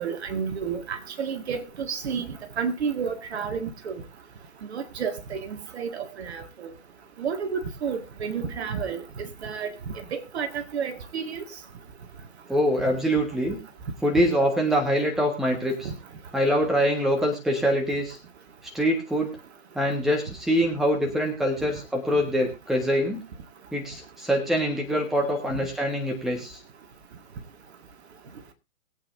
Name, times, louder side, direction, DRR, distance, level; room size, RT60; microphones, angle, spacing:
voice 1, 0.0-3.9 4.7-6.7 7.2-9.7 10.1-11.4 15.8-15.9, right 6 dB, 45° right, 2.0 m, -31 dB
voice 2, 12.5-13.6 14.0-15.9 16.3-18.2 18.7-19.4 19.7-23.2 23.7-26.5, equal, ahead, 1.5 m, -24 dB
22.0 x 8.5 x 2.6 m
figure-of-eight pair, 140°, 44 cm